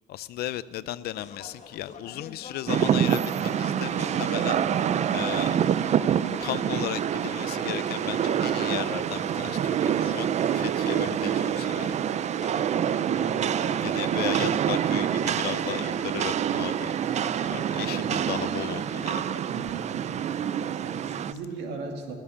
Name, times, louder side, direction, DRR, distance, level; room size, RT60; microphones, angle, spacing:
voice 1, 0.1-4.6 5.1-5.7 6.4-11.9 13.8-16.9 17.5-19.4, left 14 dB, 70° left, 17 dB, 0.5 m, -35 dB
sound 1, 1.1-19.1, left 6 dB, 45° left, 1.3 m, -47 dB
Rain, 2.7-21.3, right 9 dB, 45° right, 0.5 m, -26 dB
voice 2, 13.0-13.7 19.5-20.3 20.8-22.1, right 4 dB, 85° right, 3 dB, 2.3 m, -38 dB
18.5 x 7.4 x 8.6 m, 2.1 s
cardioid pair, 110°, 17 cm